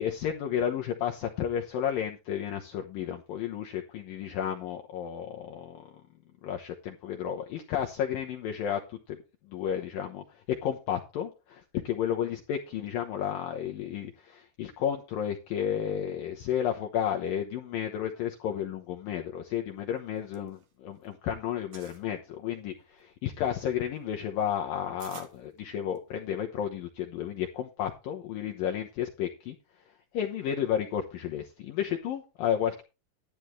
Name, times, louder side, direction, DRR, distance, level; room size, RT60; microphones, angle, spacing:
voice 1, 0.0-5.8 6.4-9.2 9.5-29.6 30.1-32.8, left 9 dB, 75° left, 2.1 m, -32 dB
sound 1, 20.0-21.2 21.4-22.1 22.7-26.3, right 7 dB, 55° right, 2.9 m, -52 dB
12.0 x 10.5 x 3.2 m
omnidirectional pair, 5.3 m